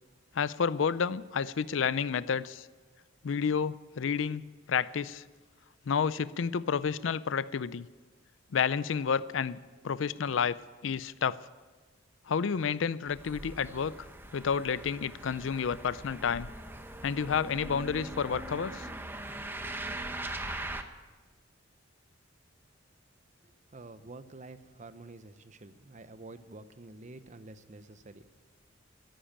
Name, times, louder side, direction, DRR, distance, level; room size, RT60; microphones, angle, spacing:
voice 1, 0.3-2.7 3.2-4.4 4.7-5.2 5.9-7.9 8.5-9.6 9.8-10.6 10.8-11.3 12.3-14.1 14.3-16.5 17.0-18.9, left 6 dB, 70° left, 17 dB, 0.5 m, -30 dB
sound 1, 13.1-20.8, right 1 dB, 10° right, 0.8 m, -41 dB
voice 2, 23.7-28.4, right 2 dB, 40° right, 12 dB, 0.7 m, -49 dB
13.0 x 10.5 x 8.8 m, 1.3 s
head